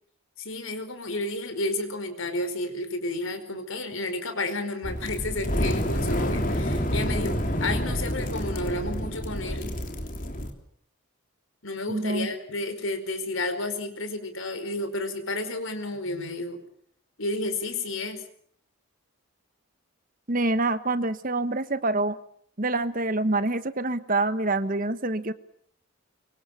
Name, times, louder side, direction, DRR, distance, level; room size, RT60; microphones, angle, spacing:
voice 1, 0.4-9.7 11.6-16.6 17.2-18.2, left 2 dB, 65° left, 8 dB, 4.9 m, -31 dB
sound 1, 4.8-10.5, equal, 40° left, 3.4 m, -28 dB
voice 2, 11.9-12.3 20.3-22.2 22.6-25.3, right 2 dB, 40° right, 12 dB, 1.2 m, -26 dB
24.5 x 24.0 x 7.3 m, 0.63 s
head